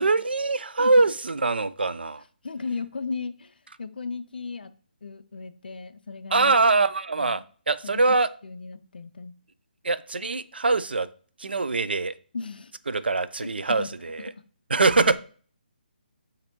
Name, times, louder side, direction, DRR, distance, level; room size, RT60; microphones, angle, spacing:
voice 1, 0.0-2.2 6.3-7.4 7.7-8.3 9.8-11.1 11.4-12.1 12.9-14.3 14.7-15.2, right 3 dB, 80° right, 14 dB, 0.3 m, -23 dB
voice 2, 2.4-4.7 5.0-6.7 7.2-7.4 7.8-8.1 8.4-9.3 12.3-12.7 13.4-13.9, left 4 dB, 70° left, 12 dB, 0.4 m, -36 dB
6.8 x 2.6 x 2.9 m, 0.43 s
figure-of-eight pair, 145°, 5 cm